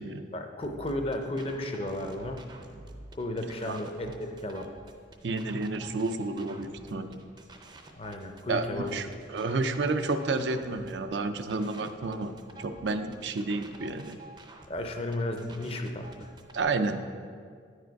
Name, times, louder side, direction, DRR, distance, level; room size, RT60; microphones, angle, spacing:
voice 1, 0.3-2.5 3.1-4.6 7.9-9.0 14.7-16.3, left 1 dB, 30° left, 5 dB, 0.5 m, -34 dB
sound 1, 0.6-16.6, right 2 dB, 25° right, 0.5 m, -49 dB
voice 2, 5.2-7.2 8.5-12.3 12.6-14.2 16.5-17.3, right 3 dB, 80° right, 8 dB, 0.5 m, -31 dB
9.9 x 4.9 x 4.6 m, 2.1 s
head